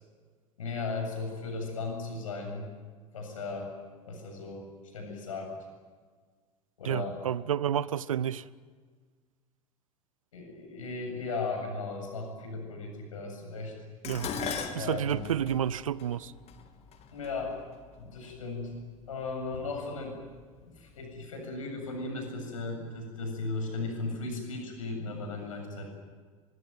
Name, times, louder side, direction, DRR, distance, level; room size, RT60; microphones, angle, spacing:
voice 1, 0.6-2.7 3.1-3.7 4.1-5.5 6.8-7.1 10.3-13.7 14.8-15.3 17.1-17.6 18.0-18.7 19.1-20.2 20.6-25.9, left 3 dB, 70° left, 7.6 m, -36 dB
voice 2, 6.8-8.4 14.1-14.3 14.7-16.3, right 9 dB, 70° right, 0.8 m, -30 dB
Dishes pots and pans, 14.0-18.4 19.3-19.7 20.1-20.9 21.2-21.3, left 5 dB, 35° left, 2.9 m, -39 dB
23.5 x 23.5 x 9.3 m
figure-of-eight pair, 75°, 18 cm